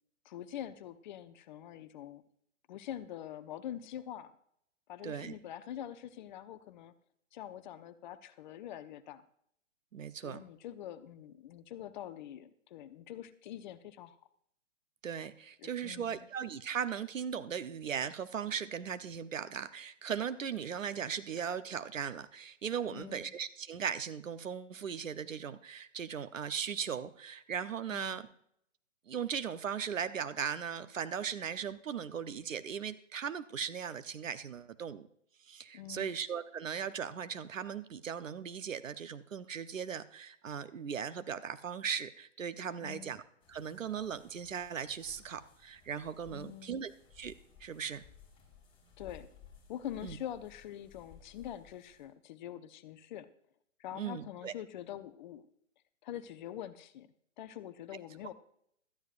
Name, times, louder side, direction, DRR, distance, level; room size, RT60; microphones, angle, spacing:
voice 1, 0.2-2.2 2.7-4.3 4.9-6.9 7.3-9.2 10.2-14.2 15.6-16.3 22.9-23.3 27.9-28.3 35.7-36.2 42.8-43.1 46.3-46.7 49.0-49.3 49.7-53.3 53.8-55.5 56.0-57.1 57.4-58.3, left 11 dB, 35° left, 11 dB, 0.8 m, -45 dB
voice 2, 5.0-5.3 9.9-10.5 15.0-28.2 29.1-35.1 35.5-43.2 43.5-46.9 47.2-47.3 47.6-48.0 50.0-50.2 53.9-54.5, right 7 dB, 80° right, 12 dB, 0.9 m, -38 dB
sound 1, 43.4-52.1, left 7 dB, 15° left, 4.5 m, -59 dB
17.0 x 13.0 x 2.5 m, 0.70 s
figure-of-eight pair, 130°, 38 cm